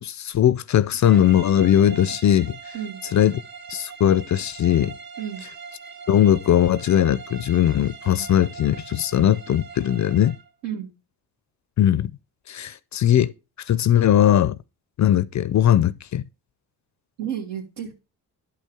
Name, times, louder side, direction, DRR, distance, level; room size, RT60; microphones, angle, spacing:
voice 1, 0.0-2.7 3.1-3.3 3.7-4.9 6.1-10.3 11.8-12.1 12.5-13.3 13.7-14.6 15.0-16.2, left 11 dB, 45° left, 0.4 m, -19 dB
sound 1, 1.0-10.5, right 5 dB, 55° right, 0.9 m, -41 dB
voice 2, 2.7-3.1 5.2-5.5 10.6-10.9 17.2-17.9, right 9 dB, 75° right, 2.6 m, -31 dB
11.5 x 5.4 x 3.5 m
cardioid pair, 75°, 43 cm